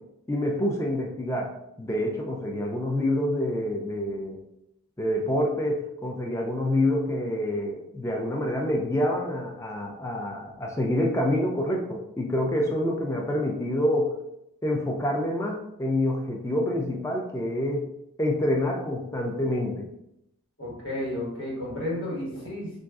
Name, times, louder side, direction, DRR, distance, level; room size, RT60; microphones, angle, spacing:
voice 1, 0.3-1.5 1.8-4.4 5.0-14.1 14.6-17.9 18.2-19.9, left 1 dB, 15° left, 0 dB, 0.4 m, -27 dB
voice 2, 20.6-22.8, left 1 dB, 55° left, -6 dB, 1.4 m, -32 dB
3.8 x 2.6 x 2.3 m, 0.81 s
head